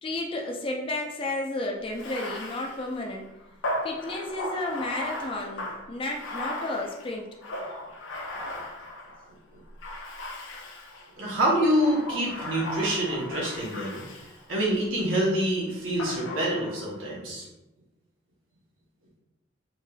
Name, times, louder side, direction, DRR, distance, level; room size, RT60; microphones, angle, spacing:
voice 1, 0.0-3.3 3.8-7.4, left 2 dB, 25° left, 0 dB, 0.3 m, -32 dB
Bathtub (filling or washing), 1.9-9.3 9.8-11.1 11.7-14.8 16.0-17.0, left 1 dB, 85° left, 0.6 m, -37 dB
voice 2, 11.2-14.0 14.5-17.5, right 1 dB, 90° right, -4 dB, 0.8 m, -26 dB
3.1 x 2.8 x 2.2 m, 0.93 s
head